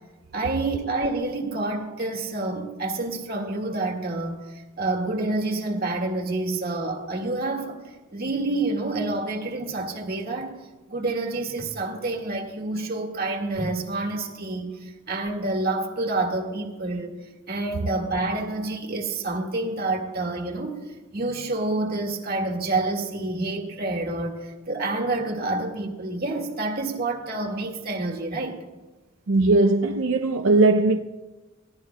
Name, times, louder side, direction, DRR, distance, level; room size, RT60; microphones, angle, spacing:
voice 1, 0.3-4.4 4.8-7.8 8.1-10.6 10.9-17.2 17.5-20.8 21.1-28.6, right 2 dB, 50° right, 1.8 m, -28 dB
voice 2, 29.3-31.0, right 2 dB, 90° right, 0.5 m, -19 dB
22.0 x 16.0 x 2.2 m
head